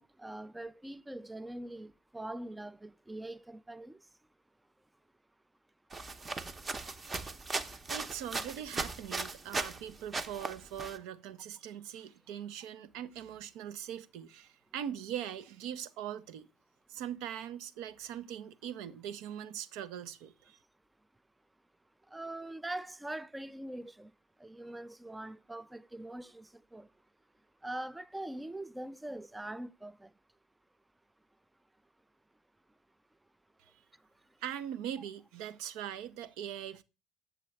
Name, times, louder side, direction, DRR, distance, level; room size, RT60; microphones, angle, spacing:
voice 1, 0.0-4.1 7.7-7.8 22.1-24.1 24.4-26.9 27.6-30.1, right 1 dB, 10° right, 0.4 m, -43 dB
sound 1, 5.9-9.8 10.1-11.0, right 3 dB, 30° right, 0.8 m, -38 dB
voice 2, 7.9-16.5 16.9-20.6 34.4-36.8, right 10 dB, 60° right, 0.6 m, -41 dB
8.4 x 7.0 x 3.2 m
figure-of-eight pair, 60°, 0 cm